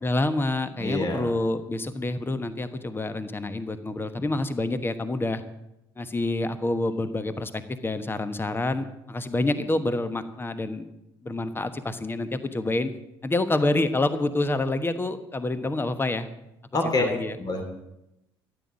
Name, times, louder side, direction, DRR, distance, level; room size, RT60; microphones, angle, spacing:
voice 1, 0.0-5.4 6.0-10.9 11.2-12.9 13.2-16.3 17.0-17.4, left 2 dB, 15° left, 11 dB, 1.2 m, -27 dB
voice 2, 0.8-1.3 16.7-17.1 17.4-17.6, left 2 dB, 35° left, 5 dB, 2.8 m, -26 dB
14.0 x 8.9 x 7.5 m, 0.88 s
figure-of-eight pair, 55°, 12 cm